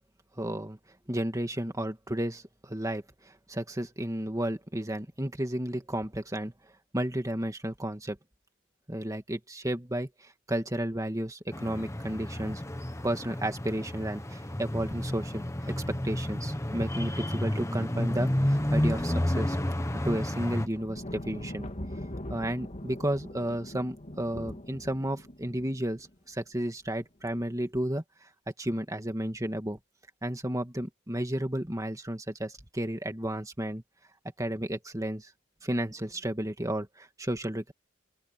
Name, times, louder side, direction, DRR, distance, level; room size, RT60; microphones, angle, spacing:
voice 1, 0.4-0.8 1.1-6.5 6.9-8.2 8.9-12.6 13.0-19.6 19.9-21.7 22.3-28.0 28.6-29.8 30.2-33.8 34.4-35.3 35.6-37.7, right 1 dB, 15° right, 2.3 m, -32 dB
sound 1, 11.5-20.7, left 1 dB, 15° left, 1.3 m, -31 dB
sound 2, 20.6-26.0 27.2-27.5, left 1 dB, 35° left, 3.3 m, -42 dB
open air
head